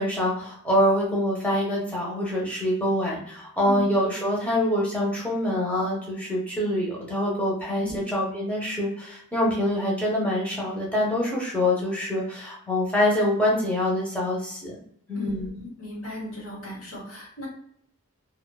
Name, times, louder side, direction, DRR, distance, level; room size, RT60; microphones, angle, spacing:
voice 1, 0.0-14.8 15.1-15.5, left 1 dB, 5° left, -4 dB, 0.7 m, -25 dB
voice 2, 15.1-17.5, left 1 dB, 70° left, -4 dB, 1.2 m, -36 dB
2.6 x 2.4 x 2.2 m, 0.67 s
head